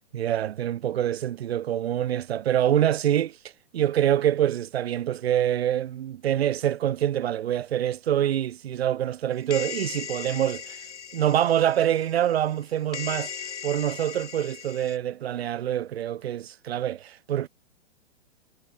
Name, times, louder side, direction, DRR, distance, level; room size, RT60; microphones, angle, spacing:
voice 1, 0.1-3.4 3.7-10.8 11.1-13.3 13.6-17.5, right 11 dB, 55° right, 2.0 m, -25 dB
sound 1, 9.5-12.6 12.9-15.0, left 7 dB, 65° left, 3.8 m, -38 dB
figure-of-eight pair, 125°, 37 cm